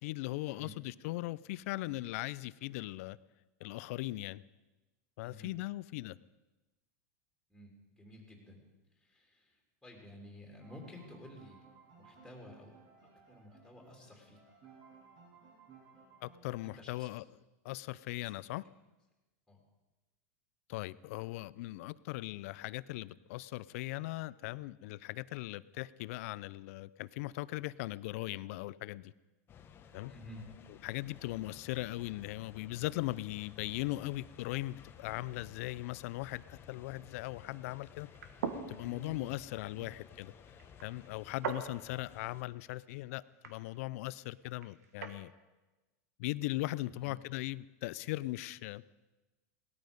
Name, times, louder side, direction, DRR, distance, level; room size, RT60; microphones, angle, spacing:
voice 1, 0.0-3.2 3.6-4.4 5.2-6.2 16.2-17.2 17.6-18.6 20.7-29.1 29.9-30.1 30.8-38.1 38.7-40.3 40.8-45.3 46.2-48.8, left 18 dB, 65° left, 19 dB, 0.5 m, -39 dB
voice 2, 7.5-8.6 8.9-11.6 12.0-12.7 13.0-14.4 16.6-17.1 18.2-18.5 19.5-19.6 30.1-30.4 38.8-39.3 46.8-47.1, left 1 dB, ahead, 0 dB, 3.1 m, -53 dB
sound 1, 10.6-16.6, right 6 dB, 50° right, 6.3 m, -59 dB
sound 2, 29.5-42.4, left 7 dB, 30° left, 1.0 m, -56 dB
sound 3, 38.0-45.2, right 6 dB, 85° right, 1.5 m, -45 dB
18.0 x 13.0 x 5.3 m, 1.1 s
supercardioid pair, 135°, 8 cm